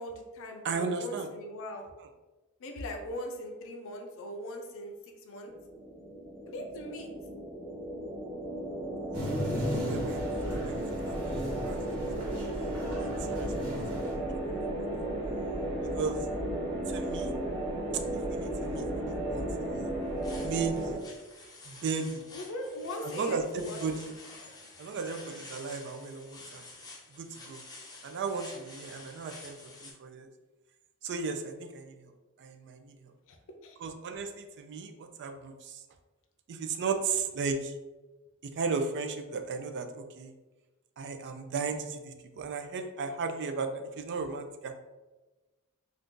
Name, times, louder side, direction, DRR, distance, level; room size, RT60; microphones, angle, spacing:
voice 1, 0.0-1.9 2.6-5.5 6.5-7.1 22.3-23.8 33.3-33.4 33.6-33.8, left 1 dB, 65° left, 3 dB, 0.5 m, -40 dB
voice 2, 0.6-1.3 9.1-9.2 9.6-10.2 10.5-11.2 11.4-11.8 12.3-12.4 13.0-14.1 14.6-14.7 15.9-16.3 16.9-17.3 18.3-19.9 20.3-21.0 21.7-22.2 23.0-24.2 24.8-26.6 27.2-27.6 28.0-30.3 31.0-31.9 32.4-33.0 33.8-35.8 36.5-37.7 38.4-40.3 41.0-44.7, right 4 dB, 50° right, 7 dB, 0.3 m, -35 dB
sound 1, 5.5-21.0, right 1 dB, 25° right, 0.9 m, -34 dB
sound 2, 9.1-14.2, equal, 90° right, 1.2 m, -38 dB
sound 3, 20.0-29.9, left 3 dB, 15° left, 0.6 m, -49 dB
2.6 x 2.4 x 3.6 m, 1.2 s
head